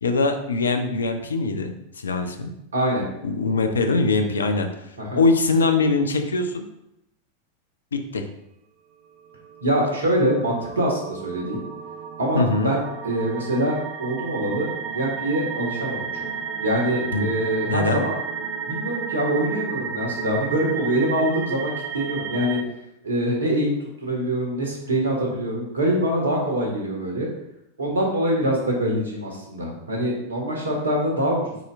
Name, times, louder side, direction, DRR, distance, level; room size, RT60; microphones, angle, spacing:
voice 1, 0.0-2.5 3.2-4.7 5.2-6.6 7.9-8.2 12.3-12.7 17.1-17.3 17.7-18.0, left 3 dB, 70° left, 7 dB, 0.7 m, -22 dB
voice 2, 2.7-3.0 5.0-5.2 9.6-11.6 12.2-16.3 16.6-18.1 18.7-22.6 23.0-27.3 27.8-31.6, right 1 dB, 70° right, -1 dB, 1.7 m, -24 dB
sound 1, 9.4-22.6, right 6 dB, 50° right, 0.6 m, -33 dB
9.0 x 4.3 x 2.5 m, 0.84 s
figure-of-eight pair, 90°, 0 cm